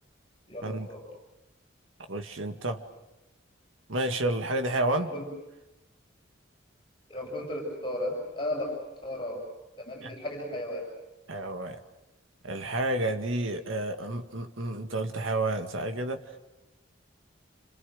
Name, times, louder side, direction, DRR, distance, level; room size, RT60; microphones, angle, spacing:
voice 1, 0.5-1.0 4.9-5.3 7.1-8.7 9.0-9.4 9.8-10.8, left 1 dB, 25° left, 0 dB, 6.4 m, -34 dB
voice 2, 2.1-2.8 3.9-5.1 10.0-10.2 11.3-11.8 12.4-16.2, right 2 dB, 80° right, 6 dB, 2.0 m, -30 dB
29.5 x 27.5 x 6.5 m, 0.93 s
head